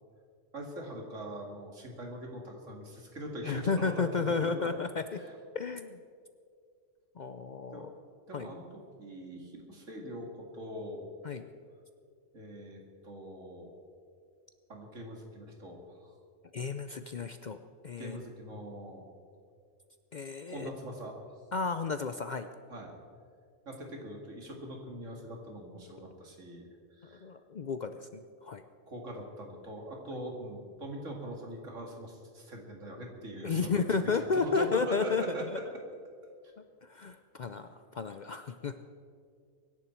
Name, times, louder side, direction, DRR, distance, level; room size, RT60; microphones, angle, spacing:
voice 1, 0.5-4.7 5.1-5.4 7.7-8.7 9.0-11.1 12.3-13.7 14.7-16.1 18.0-19.0 20.4-21.1 22.7-23.0 23.6-26.7 27.0-27.2 28.9-35.6, right 1 dB, 80° right, 1 dB, 2.6 m, -42 dB
voice 2, 3.4-5.2 5.5-6.0 7.2-7.9 8.3-8.5 11.2-11.4 16.5-17.6 17.8-18.2 20.1-20.7 21.5-22.5 27.2-28.6 33.4-35.6 36.8-38.8, left 4 dB, 50° left, 9 dB, 0.5 m, -32 dB
24.0 x 11.0 x 4.5 m, 2.2 s
omnidirectional pair, 1.3 m